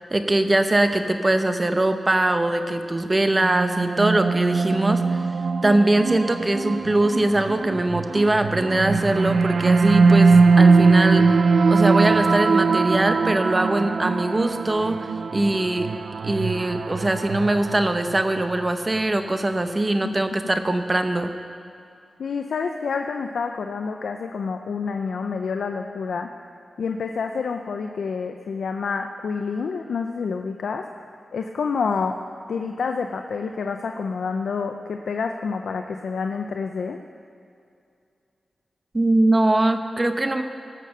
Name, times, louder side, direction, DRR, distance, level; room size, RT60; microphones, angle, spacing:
voice 1, 0.1-5.2 5.6-11.2 11.7-15.9 16.2-21.3 38.9-40.4, right 1 dB, 25° right, 7 dB, 0.8 m, -22 dB
sound 1, 3.3-18.7, right 4 dB, 75° right, 0.4 m, -21 dB
voice 2, 22.2-26.3 26.8-30.8 31.3-32.2 32.5-37.0, left 5 dB, 90° left, 5 dB, 0.5 m, -28 dB
17.5 x 6.7 x 6.6 m, 2.5 s
wide cardioid pair, 75°, 0 cm